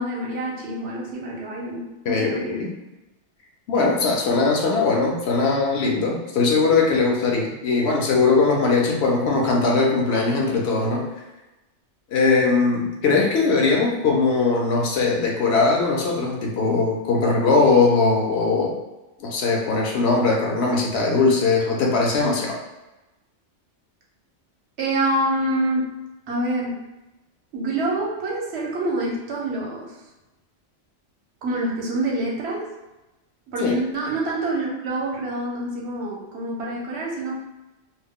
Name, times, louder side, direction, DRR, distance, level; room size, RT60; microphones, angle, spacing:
voice 1, 0.0-2.7 24.8-25.9 26.3-26.8 27.5-29.9 31.4-32.7 33.5-37.3, right 1 dB, 65° right, -3 dB, 0.9 m, -26 dB
voice 2, 2.0-2.7 3.7-11.1 12.1-18.7 19.2-22.6 33.6-33.7, left 4 dB, 65° left, -1 dB, 0.8 m, -20 dB
2.4 x 2.0 x 3.5 m, 1.0 s
omnidirectional pair, 1.2 m